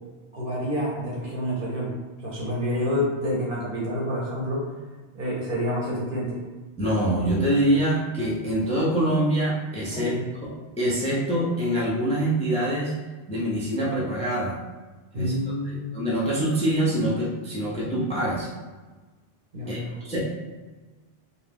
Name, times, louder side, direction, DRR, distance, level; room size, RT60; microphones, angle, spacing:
voice 1, 0.3-1.9 2.2-4.7 5.1-6.4 9.9-10.2 15.1-15.9 19.5-20.0, equal, 55° right, -5 dB, 1.0 m, -28 dB
voice 2, 6.8-10.1 10.4-12.9 13.3-14.6 15.1-15.3 15.9-18.5 19.7-20.4, right 1 dB, 10° left, -6 dB, 0.4 m, -25 dB
2.5 x 2.3 x 3.4 m, 1.3 s
omnidirectional pair, 1.1 m